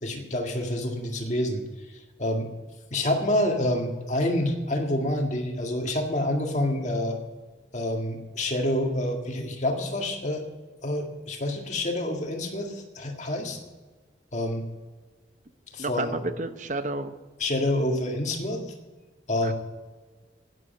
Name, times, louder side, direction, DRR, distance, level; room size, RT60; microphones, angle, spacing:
voice 1, 0.0-1.6 2.2-2.5 2.9-7.2 7.7-10.4 10.8-13.6 14.3-14.7 15.7-16.2 17.4-18.7 19.3-19.5, left 1 dB, 40° left, 3 dB, 1.9 m, -27 dB
voice 2, 15.8-17.1 19.4-19.5, right 2 dB, 45° right, 10 dB, 0.9 m, -31 dB
11.0 x 9.9 x 8.2 m, 1.3 s
head